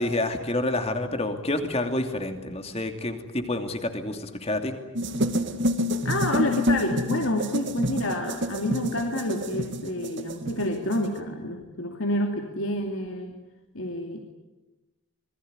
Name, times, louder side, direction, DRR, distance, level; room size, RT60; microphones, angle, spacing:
voice 1, 0.0-4.7, left 1 dB, 30° left, 6 dB, 2.7 m, -28 dB
sound 1, 5.0-11.2, equal, 55° right, 2.2 m, -28 dB
voice 2, 6.0-13.3 13.7-14.2, left 1 dB, 65° left, 3 dB, 2.8 m, -28 dB
27.0 x 21.0 x 9.7 m, 1.0 s
head